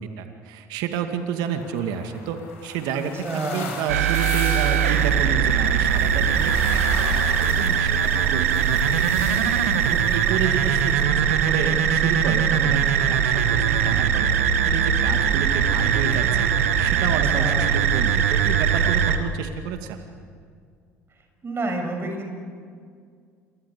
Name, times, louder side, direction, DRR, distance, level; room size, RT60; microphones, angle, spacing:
voice 1, 0.0-14.3 14.6-16.5 16.8-20.0, right 7 dB, 70° right, 6 dB, 2.3 m, -30 dB
sound 1, 1.4-11.0, left 5 dB, 85° left, 6.3 m, -39 dB
voice 2, 2.9-3.7 17.0-17.7 21.4-22.3, right 2 dB, 35° right, 4 dB, 6.7 m, -30 dB
sound 2, 3.9-19.2, right 7 dB, 90° right, 1.7 m, -21 dB
28.0 x 23.5 x 8.5 m, 2.1 s
hypercardioid pair, 65°, 7 cm